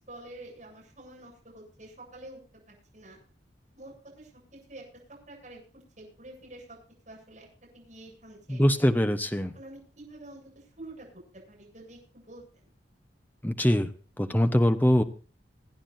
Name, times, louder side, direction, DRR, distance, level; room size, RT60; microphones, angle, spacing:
voice 1, 0.0-2.4 2.7-3.2 3.7-6.8 7.1-7.5 7.7-8.6 9.5-11.1 11.5-12.7, right 1 dB, 40° right, -3 dB, 8.0 m, -48 dB
voice 2, 8.5-9.6 13.4-13.9 14.2-15.0, equal, 10° left, 8 dB, 1.0 m, -23 dB
26.5 x 9.8 x 2.7 m, 0.39 s
head